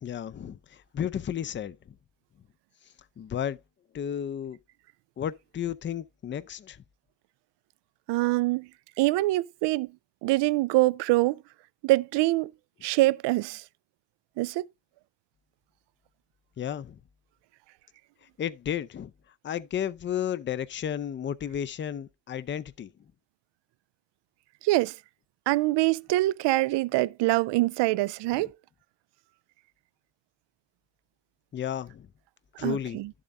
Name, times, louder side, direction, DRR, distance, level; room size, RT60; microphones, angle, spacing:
voice 1, 0.0-2.0 3.2-3.6 3.9-4.6 5.2-6.8 16.6-17.0 18.4-19.1 19.4-22.9 28.3-28.5 31.5-32.1 32.6-33.0, left 9 dB, 25° left, 0.5 m, -33 dB
voice 2, 8.1-8.7 9.0-9.9 10.2-11.4 11.8-12.5 12.8-13.6 14.4-14.7 24.6-25.0 25.5-28.5 32.6-33.1, right 19 dB, 75° right, 0.5 m, -24 dB
11.5 x 7.4 x 2.5 m
cardioid pair, 110°, 43 cm